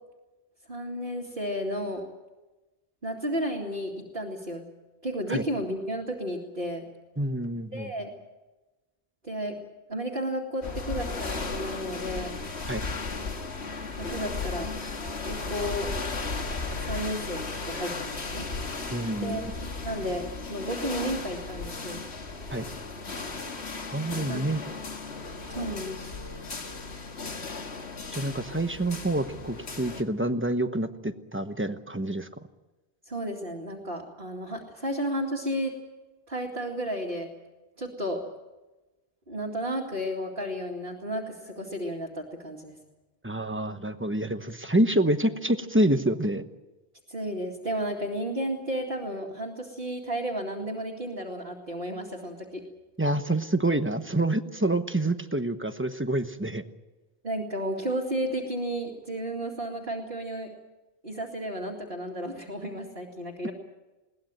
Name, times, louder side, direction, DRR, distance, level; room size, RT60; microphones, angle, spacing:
voice 1, 0.7-2.0 3.0-4.6 5.0-6.8 7.7-8.1 9.2-9.6 9.9-12.4 14.0-14.7 15.3-15.9 16.8-18.5 19.2-19.4 19.8-20.2 20.5-22.0 24.3-24.4 25.5-26.1 33.1-35.7 36.3-37.3 37.8-38.2 39.3-42.7 47.1-52.6 57.2-60.5 61.0-63.5, equal, 55° right, -2 dB, 2.6 m, -32 dB
voice 2, 7.2-7.9 12.7-12.8 18.9-19.5 22.5-22.6 23.9-24.6 28.1-32.3 43.2-46.4 53.0-56.6, right 1 dB, 10° right, 8 dB, 1.0 m, -27 dB
sound 1, 10.6-30.0, left 3 dB, 80° left, 2.1 m, -35 dB
21.5 x 18.5 x 9.0 m, 1.1 s
omnidirectional pair, 1.1 m